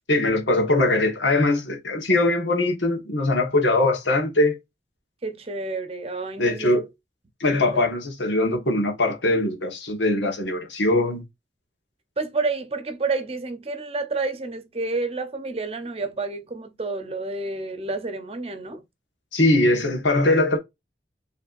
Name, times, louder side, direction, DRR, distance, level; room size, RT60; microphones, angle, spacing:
voice 1, 0.1-4.6 6.4-6.8 7.4-11.2 19.3-20.6, left 2 dB, 90° left, 1.5 m, -21 dB
voice 2, 5.2-6.8 7.5-7.9 12.2-18.8, right 3 dB, 35° right, 0.8 m, -29 dB
5.4 x 3.3 x 2.6 m
head